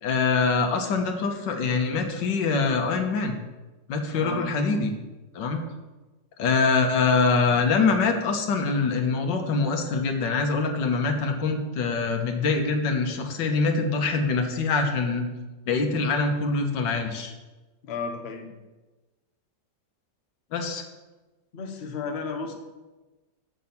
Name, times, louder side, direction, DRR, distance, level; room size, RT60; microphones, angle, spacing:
voice 1, 0.0-3.4 3.9-4.9 5.3-5.6 6.4-15.3 15.7-17.3 20.5-20.8, left 4 dB, 75° left, 5 dB, 1.7 m, -24 dB
voice 2, 4.1-4.5 17.8-18.5 21.5-22.5, left 4 dB, 45° left, 4 dB, 1.0 m, -33 dB
6.5 x 6.1 x 7.0 m, 1.2 s
omnidirectional pair, 2.0 m